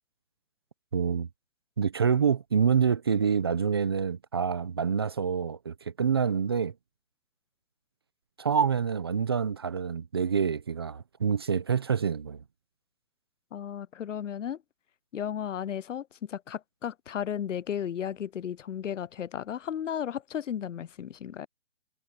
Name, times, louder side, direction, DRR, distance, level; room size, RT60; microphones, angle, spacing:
voice 1, 0.9-1.3 1.8-6.7 8.4-12.4, right 6 dB, 20° right, 0.5 m, -27 dB
voice 2, 13.5-14.6 15.1-21.5, left 9 dB, 75° left, 0.6 m, -34 dB
hypercardioid pair, 155°, 37 cm